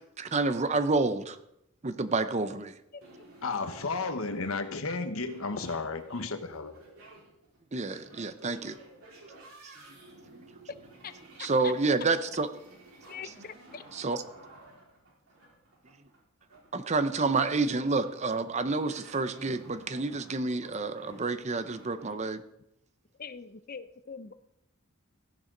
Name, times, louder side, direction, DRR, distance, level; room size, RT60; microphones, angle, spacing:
voice 1, 0.2-1.4 1.8-2.7 7.7-8.8 9.6-9.7 10.3-10.4 11.4-12.5 13.9-14.2 16.7-22.4, right 3 dB, 30° right, 11 dB, 0.7 m, -29 dB
sound 1, 3.0-22.1, right 2 dB, 80° right, 4.6 m, -53 dB
voice 2, 3.4-6.7, left 3 dB, 80° left, 8 dB, 1.2 m, -33 dB
voice 3, 11.0-11.7 13.1-13.8 23.2-24.3, left 6 dB, 45° left, 13 dB, 0.6 m, -43 dB
15.5 x 11.0 x 3.9 m, 0.80 s
head